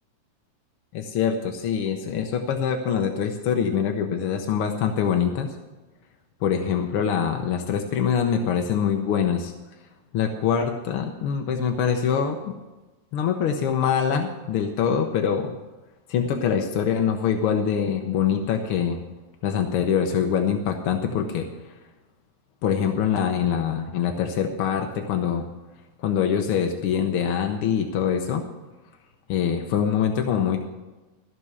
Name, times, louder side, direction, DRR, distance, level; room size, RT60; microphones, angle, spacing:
voice 1, 0.9-5.5 6.4-9.5 10.1-12.5 13.1-15.5 16.1-19.0 19.4-21.7 22.6-25.5 26.0-28.4 29.3-30.6, left 7 dB, 70° left, 4 dB, 1.4 m, -24 dB
14.0 x 6.1 x 8.1 m, 1.1 s
omnidirectional pair, 3.3 m